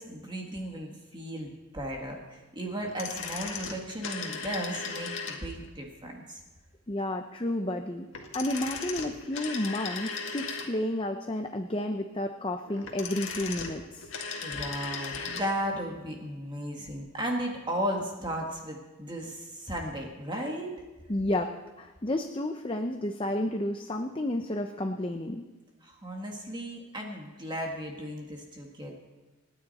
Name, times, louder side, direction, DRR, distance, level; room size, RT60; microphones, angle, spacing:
voice 1, 0.0-6.4 14.4-20.7 25.8-28.9, equal, 20° right, 0 dB, 1.7 m, -35 dB
sound 1, 2.8-5.7 8.1-11.0 12.7-15.5 15.8-15.9, left 5 dB, 60° left, 1.9 m, -37 dB
voice 2, 6.9-8.1 8.3-14.1 21.1-21.5 21.8-25.4, left 1 dB, 25° left, 5 dB, 0.7 m, -31 dB
27.5 x 9.8 x 4.2 m, 1.2 s
head